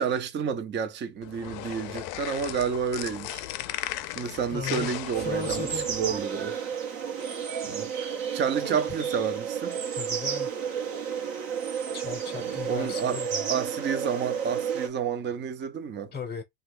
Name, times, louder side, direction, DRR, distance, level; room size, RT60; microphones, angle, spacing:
voice 1, 0.0-3.5 4.1-6.6 7.6-9.8 11.4-11.5 12.3-16.1, right 7 dB, 25° right, 0.5 m, -30 dB
sound 1, 1.2-6.2, left 15 dB, 55° left, 0.5 m, -37 dB
voice 2, 4.5-5.9 8.6-8.8 10.0-10.5 11.9-13.5 16.1-16.4, left 5 dB, 20° left, 0.8 m, -36 dB
sound 2, 5.1-14.9, right 7 dB, 50° right, 1.0 m, -32 dB
3.1 x 2.4 x 3.0 m
supercardioid pair, 120°, 46 cm